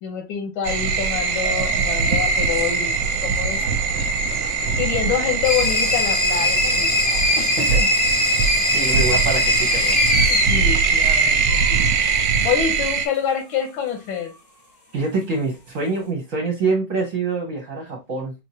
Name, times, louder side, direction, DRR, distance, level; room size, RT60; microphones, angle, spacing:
voice 1, 0.0-3.0 3.2-3.6 4.6-6.9 7.4-7.9 9.9-11.8 12.4-14.3, left 8 dB, 85° left, 1.7 m, -26 dB
sound 1, 0.6-13.1, right 5 dB, 75° right, 1.3 m, -21 dB
sound 2, 5.4-11.8, left 2 dB, 30° left, 0.9 m, -22 dB
voice 2, 8.7-10.0 14.9-18.3, right 3 dB, 50° right, 1.2 m, -25 dB
4.6 x 2.8 x 2.7 m
omnidirectional pair, 2.2 m